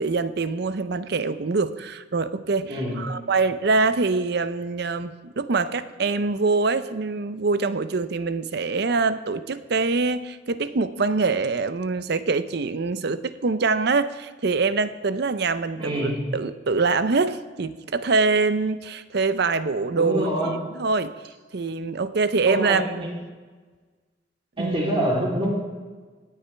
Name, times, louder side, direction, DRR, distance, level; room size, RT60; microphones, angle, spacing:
voice 1, 0.0-21.1 21.5-23.1 24.6-24.8, right 4 dB, 60° right, 13 dB, 0.6 m, -24 dB
voice 2, 2.7-3.1 15.7-16.3 19.9-20.6 22.5-23.1 24.6-25.5, equal, 30° right, -3 dB, 3.2 m, -26 dB
17.5 x 10.0 x 3.4 m, 1.4 s
head